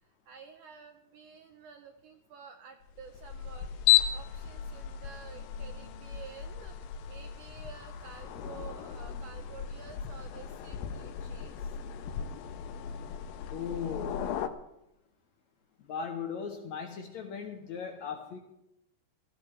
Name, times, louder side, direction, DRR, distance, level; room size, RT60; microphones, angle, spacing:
voice 1, 0.0-11.8, right 6 dB, 75° right, 5 dB, 1.9 m, -51 dB
sound 1, 2.9-14.5, left 11 dB, 80° left, 2.5 m, -34 dB
voice 2, 13.5-14.4 15.8-18.4, left 6 dB, 65° left, 2 dB, 2.0 m, -38 dB
18.0 x 14.0 x 3.3 m, 0.86 s
omnidirectional pair, 4.3 m